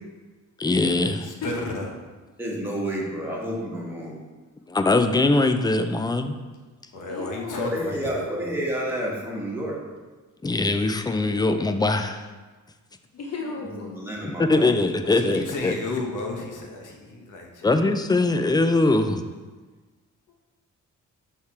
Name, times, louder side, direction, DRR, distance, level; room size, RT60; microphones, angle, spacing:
voice 1, 0.6-1.3 4.7-6.4 10.4-12.3 14.4-15.7 17.6-19.2, left 2 dB, 15° left, 8 dB, 0.3 m, -21 dB
voice 2, 1.2-1.9 6.9-8.6 10.7-11.0 15.0-18.1 19.1-19.3, left 2 dB, 70° left, 1 dB, 1.1 m, -34 dB
voice 3, 2.4-4.2 7.6-9.8 13.8-14.7, equal, 5° right, -4 dB, 1.4 m, -30 dB
voice 4, 7.1-7.8 13.1-13.9 20.3-20.4, left 4 dB, 55° left, 0 dB, 0.6 m, -34 dB
6.4 x 3.6 x 4.2 m, 1.3 s
cardioid pair, 110°, 32 cm